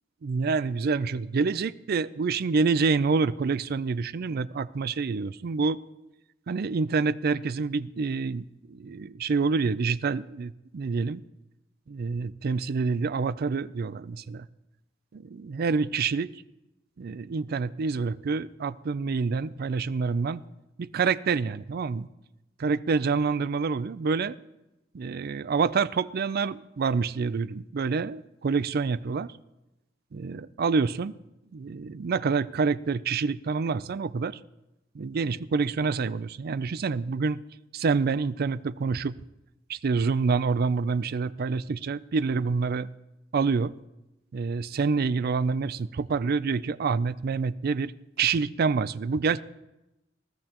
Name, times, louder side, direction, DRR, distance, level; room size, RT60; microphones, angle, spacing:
voice 1, 0.2-5.8 6.5-11.2 11.9-14.5 15.1-16.3 17.0-20.4 20.8-22.1 22.6-24.3 24.9-29.3 30.1-31.1 31.5-34.4 34.9-37.4 37.7-39.2 39.7-42.9 43.3-43.7 44.3-47.9 48.2-49.4, right 4 dB, 50° right, 17 dB, 0.4 m, -27 dB
20.0 x 14.5 x 3.0 m, 0.96 s
head